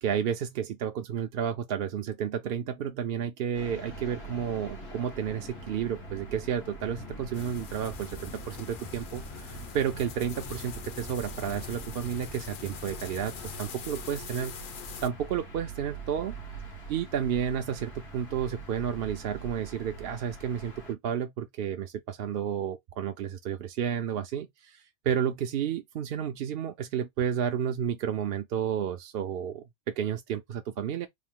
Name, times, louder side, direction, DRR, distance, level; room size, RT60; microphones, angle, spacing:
voice 1, 0.0-14.5 15.0-16.3 16.9-31.1, right 8 dB, 70° right, 0.7 m, -31 dB
sound 1, 3.5-20.9, right 3 dB, 90° left, 1.7 m, -44 dB
Bus, 6.8-13.6, left 3 dB, 25° left, 0.5 m, -46 dB
sound 2, 7.3-15.1, left 8 dB, 60° left, 0.7 m, -45 dB
3.6 x 2.6 x 3.6 m
omnidirectional pair, 1.1 m